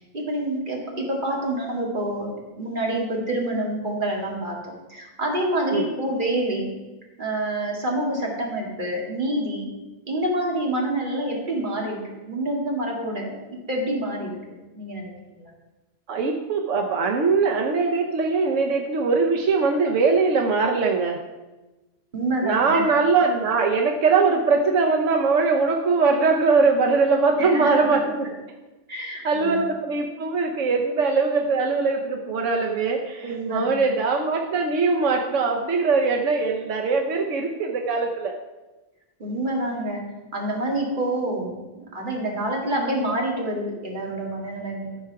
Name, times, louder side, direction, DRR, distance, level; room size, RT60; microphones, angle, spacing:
voice 1, 0.1-6.7 7.2-9.7 10.1-15.5 22.1-22.9 27.4-28.1 28.9-29.6 33.2-33.8 39.2-40.0 40.3-45.0, right 1 dB, 40° right, -2 dB, 2.2 m, -27 dB
voice 2, 16.1-21.2 22.4-28.3 29.2-38.3, right 4 dB, 90° right, 2 dB, 1.2 m, -21 dB
13.5 x 4.7 x 5.7 m, 1.1 s
omnidirectional pair, 1.3 m